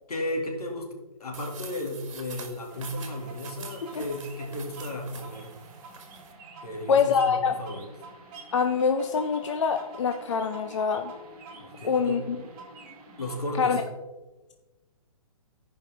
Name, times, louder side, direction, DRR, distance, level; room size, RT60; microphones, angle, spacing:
voice 1, 0.1-0.9 1.2-5.5 6.6-7.9 11.6-12.2 13.2-13.8, left 1 dB, 90° left, 1 dB, 2.5 m, -34 dB
sound 1, 1.3-6.3, right 5 dB, 55° right, 1.8 m, -46 dB
sound 2, 2.7-13.8, right 3 dB, 15° right, 1.2 m, -47 dB
voice 2, 6.9-7.6 8.5-11.1 11.8-12.4 13.6-13.8, left 6 dB, 55° left, 7 dB, 0.6 m, -25 dB
14.0 x 5.3 x 3.5 m, 1.1 s
hypercardioid pair, 165°, 19 cm